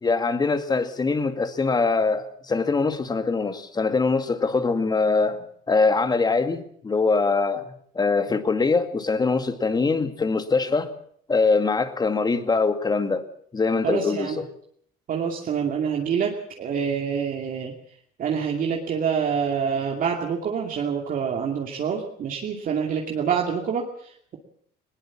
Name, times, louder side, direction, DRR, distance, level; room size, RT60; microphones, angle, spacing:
voice 1, 0.0-10.9 11.3-13.2 13.5-14.4, left 4 dB, 25° left, 2.1 m, -23 dB
voice 2, 13.8-14.4 15.1-17.7 18.2-24.4, right 7 dB, 55° right, 2.6 m, -26 dB
20.0 x 19.5 x 7.4 m
cardioid pair, 110°, 17 cm